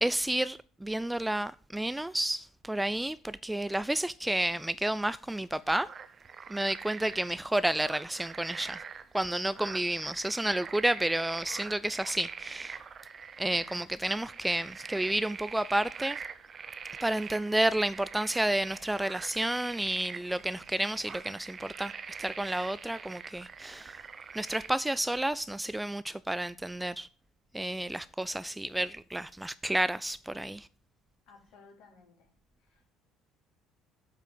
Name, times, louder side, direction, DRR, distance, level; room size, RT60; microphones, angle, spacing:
voice 1, 0.0-5.9 6.5-8.8 9.1-12.8 13.4-16.2 17.0-21.9 22.2-24.0 24.3-27.1 27.5-30.7, right 1 dB, 10° right, 0.4 m, -31 dB
sound 1, 5.5-24.7, right 6 dB, 35° right, 0.8 m, -44 dB
voice 2, 31.3-32.3 32.6-32.9, left 4 dB, 60° left, 3.4 m, -58 dB
8.5 x 5.7 x 7.7 m
figure-of-eight pair, 55°, 0 cm